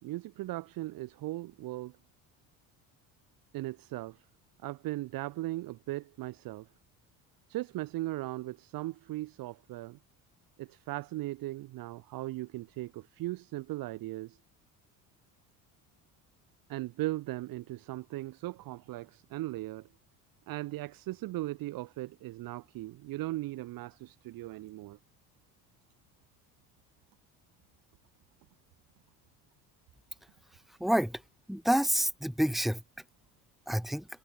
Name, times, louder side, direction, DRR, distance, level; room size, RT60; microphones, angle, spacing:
voice 1, 0.0-1.9 3.5-4.1 4.6-6.6 7.5-10.0 10.6-14.3 16.7-19.8 20.5-25.0, right 17 dB, 65° right, 4.4 m, -38 dB
voice 2, 30.8-31.2 31.5-32.8 33.7-34.1, equal, ahead, 3.2 m, -28 dB
cardioid pair, 135°, 36 cm